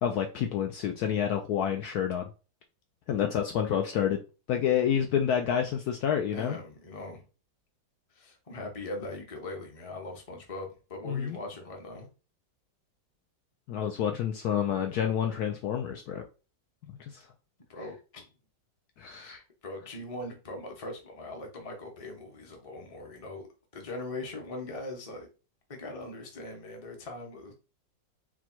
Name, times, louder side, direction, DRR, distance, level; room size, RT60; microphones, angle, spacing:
voice 1, 0.0-2.3 3.1-4.2 4.5-6.6 11.0-11.4 13.7-16.2 16.9-17.3 19.0-19.4, left 9 dB, 70° left, 4 dB, 0.9 m, -29 dB
voice 2, 6.3-7.2 8.1-12.1 17.7-18.3 19.2-23.5 23.7-25.3 25.7-27.5, left 2 dB, 25° left, 2 dB, 0.7 m, -40 dB
4.3 x 2.2 x 4.4 m, 0.33 s
omnidirectional pair, 1.9 m